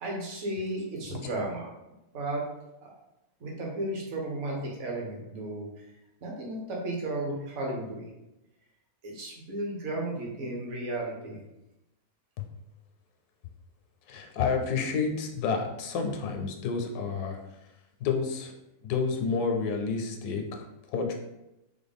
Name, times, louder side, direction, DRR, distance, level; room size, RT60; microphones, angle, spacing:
voice 1, 0.0-1.7 2.1-2.5 2.8-2.9 3.4-5.7 6.2-8.1 9.0-11.4, right 1 dB, 55° right, -2 dB, 1.1 m, -34 dB
voice 2, 14.1-17.4 18.0-18.5 18.8-20.6 20.9-21.1, left 5 dB, 80° left, 4 dB, 1.1 m, -29 dB
3.6 x 2.2 x 3.5 m, 0.91 s
omnidirectional pair, 1.6 m